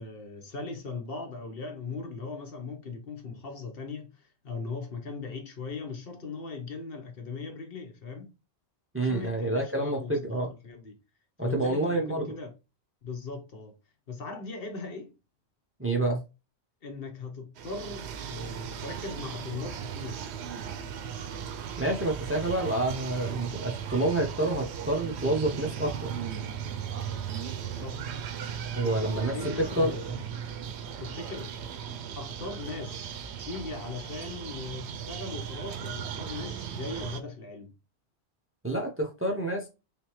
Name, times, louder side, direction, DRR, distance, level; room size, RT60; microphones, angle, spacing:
voice 1, 0.0-8.3 9.0-11.0 11.4-12.5 13.0-13.7 14.1-15.1 16.8-20.2 27.8-28.0 28.8-30.1 31.0-31.6 32.1-33.1 33.4-37.7, left 4 dB, 60° left, 1.1 m, -39 dB
voice 2, 8.9-10.5 11.4-12.2 15.8-16.2 21.8-26.1 28.8-29.3 29.8-29.9 38.6-39.7, right 2 dB, 15° right, 0.6 m, -28 dB
sound 1, 17.6-37.2, right 8 dB, 85° right, 0.8 m, -37 dB
3.5 x 3.4 x 3.0 m
omnidirectional pair, 1.1 m